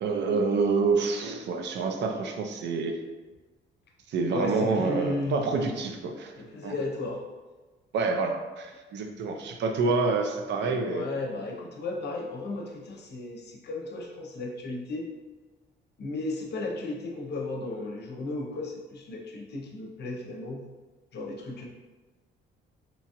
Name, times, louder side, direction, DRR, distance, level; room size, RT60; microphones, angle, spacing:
voice 1, 0.0-3.0 4.1-6.3 6.6-6.7 7.9-11.0, right 4 dB, 65° right, 4 dB, 0.4 m, -27 dB
voice 2, 4.3-5.4 6.4-7.3 10.6-15.1 16.0-20.7 21.1-21.7, left 2 dB, 55° left, 0 dB, 0.6 m, -34 dB
2.9 x 2.3 x 2.8 m, 1.2 s
cardioid pair, 90°, 20 cm